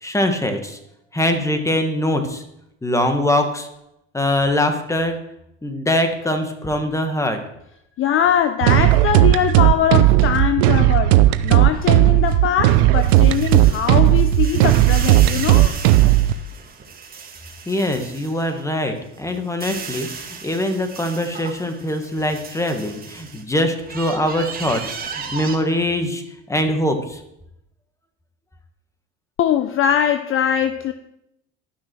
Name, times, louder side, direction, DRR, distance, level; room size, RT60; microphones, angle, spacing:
voice 1, 0.0-0.8 1.1-2.4 2.8-3.7 4.1-5.2 5.6-7.4 17.7-26.2 26.5-27.2, left 1 dB, 10° left, 6 dB, 1.5 m, -22 dB
voice 2, 8.0-15.8 29.4-30.9, left 9 dB, 40° left, 10 dB, 0.6 m, -21 dB
sound 1, 8.6-16.3, right 15 dB, 80° right, 0.6 m, -14 dB
sound 2, 11.7-18.6 19.1-23.4 23.8-25.6, right 5 dB, 30° right, 1.7 m, -36 dB
11.5 x 6.1 x 4.6 m, 0.82 s
supercardioid pair, 90°, 32 cm